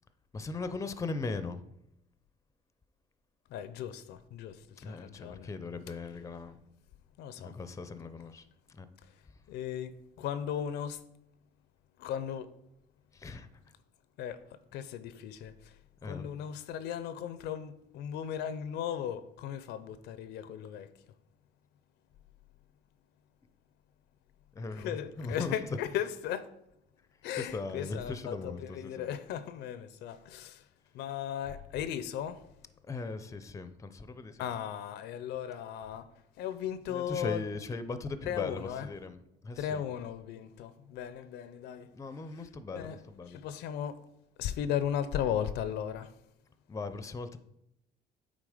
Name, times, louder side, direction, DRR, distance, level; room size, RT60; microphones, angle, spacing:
voice 1, 0.3-1.6 4.8-6.6 7.4-8.8 13.1-13.5 16.0-16.3 24.6-24.9 25.2-25.5 27.4-29.1 32.9-34.5 36.9-39.9 41.9-43.4 46.7-47.4, left 3 dB, 20° left, 0.5 m, -39 dB
voice 2, 3.5-5.5 7.2-7.5 9.0-9.1 9.5-11.0 12.0-12.5 14.2-15.8 16.0-20.9 24.7-26.5 27.2-30.7 30.9-32.4 34.4-36.1 36.4-37.4 38.2-38.9 39.6-41.9 42.3-43.0 43.3-44.0 44.4-46.2, left 9 dB, 80° left, 0.6 m, -37 dB
8.9 x 3.7 x 4.9 m
cardioid pair, 110°, 17 cm